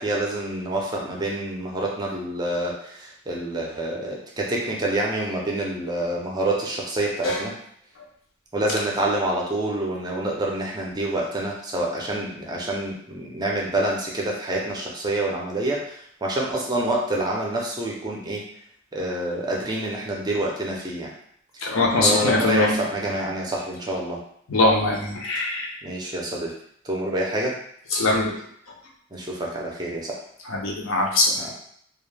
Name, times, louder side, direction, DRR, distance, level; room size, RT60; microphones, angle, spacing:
voice 1, 0.0-7.5 8.5-15.9 16.2-18.4 18.9-21.1 21.5-21.7 22.0-24.2 25.8-26.5 26.8-27.5 29.1-30.2 31.4-31.5, right 1 dB, 20° right, -2 dB, 0.4 m, -27 dB
voice 2, 21.6-22.7 24.5-25.7 27.9-28.3 30.5-31.4, left 2 dB, 80° left, -1 dB, 0.6 m, -21 dB
2.3 x 2.1 x 3.1 m, 0.67 s
head